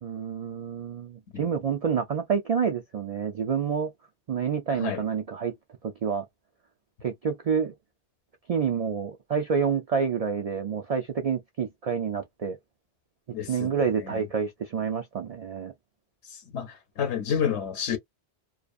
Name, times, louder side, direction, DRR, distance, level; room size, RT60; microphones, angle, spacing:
voice 1, 0.0-3.9 4.3-5.6 5.8-6.3 7.0-7.7 8.5-12.6 13.5-15.7, right 6 dB, 60° right, 0.4 m, -28 dB
voice 2, 1.3-1.7 4.7-5.1 13.3-14.3 16.3-18.0, left 8 dB, 85° left, 1.0 m, -31 dB
2.5 x 2.3 x 2.3 m
omnidirectional pair, 1.1 m